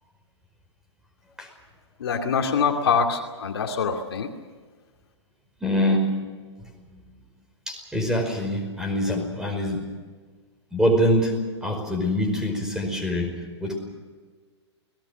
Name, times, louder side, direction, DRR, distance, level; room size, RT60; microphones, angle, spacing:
voice 1, 2.0-4.3, left 6 dB, 55° left, 3 dB, 2.5 m, -24 dB
voice 2, 5.6-6.2 6.6-6.7 7.7-9.9 10.7-13.3 13.6-13.8, equal, 5° right, 4 dB, 5.1 m, -24 dB
29.0 x 19.5 x 6.4 m, 1.5 s
figure-of-eight pair, 115°, 15 cm